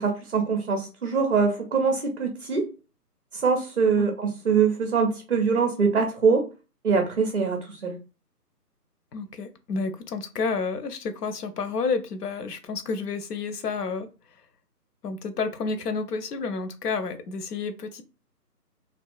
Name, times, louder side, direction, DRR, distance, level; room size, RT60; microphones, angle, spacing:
voice 1, 0.0-2.7 3.3-6.5 6.8-8.0, right 5 dB, 50° right, 0.4 m, -23 dB
voice 2, 9.1-14.1 15.0-18.0, left 4 dB, 70° left, 0.6 m, -30 dB
2.5 x 2.3 x 2.3 m
figure-of-eight pair, 160°, 49 cm